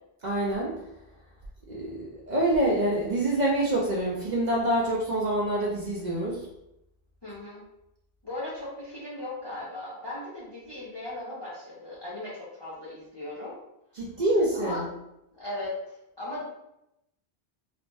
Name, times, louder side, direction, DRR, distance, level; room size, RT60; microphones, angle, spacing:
voice 1, 0.2-0.7 1.7-6.3 14.0-14.9, right 1 dB, 55° right, -4 dB, 0.5 m, -26 dB
voice 2, 7.2-7.6 8.2-13.6 14.5-14.8 15.3-16.4, left 2 dB, 35° left, -7 dB, 0.5 m, -37 dB
2.5 x 2.0 x 3.2 m, 0.84 s
omnidirectional pair, 1.1 m